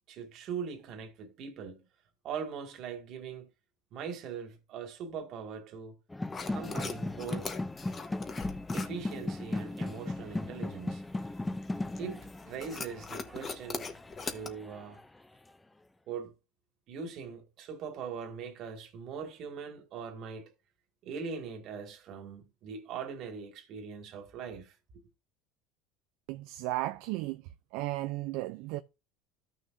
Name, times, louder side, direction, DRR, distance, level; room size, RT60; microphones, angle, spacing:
voice 1, 0.1-1.8 2.2-3.5 3.9-5.9 6.5-7.5 8.7-11.0 12.0-13.9 14.2-15.0 16.1-16.3 16.9-20.5 21.0-24.8, right 6 dB, 55° right, 2.1 m, -41 dB
sound 1, 6.1-15.0, left 2 dB, 10° left, 0.5 m, -37 dB
sound 2, 6.3-14.5, left 5 dB, 30° left, 1.2 m, -43 dB
voice 2, 26.3-27.4 27.7-28.8, right 17 dB, 70° right, 0.4 m, -34 dB
14.0 x 6.2 x 2.6 m
supercardioid pair, 120°, 0 cm